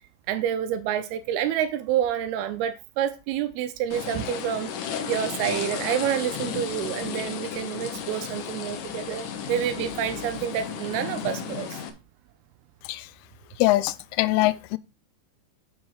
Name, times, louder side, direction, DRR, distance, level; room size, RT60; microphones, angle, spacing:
voice 1, 0.3-4.7 5.1-11.8, right 10 dB, 90° right, 2.7 m, -28 dB
sound 1, 3.9-11.9, left 7 dB, 70° left, 1.9 m, -34 dB
voice 2, 13.6-14.8, left 17 dB, 85° left, 2.5 m, -23 dB
7.3 x 6.1 x 4.7 m
omnidirectional pair, 4.5 m